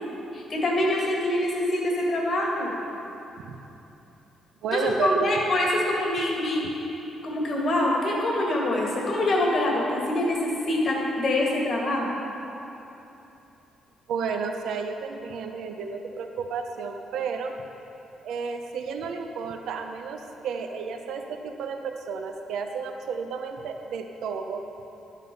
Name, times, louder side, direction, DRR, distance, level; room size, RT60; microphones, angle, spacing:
voice 1, 0.3-2.7 4.7-6.6 7.2-12.1, left 1 dB, 50° left, -2 dB, 2.1 m, -25 dB
voice 2, 4.6-5.3 14.1-17.5 18.2-24.6, right 5 dB, 80° right, 4 dB, 0.7 m, -32 dB
11.0 x 7.5 x 5.4 m, 3.0 s
cardioid pair, 90°, 0 cm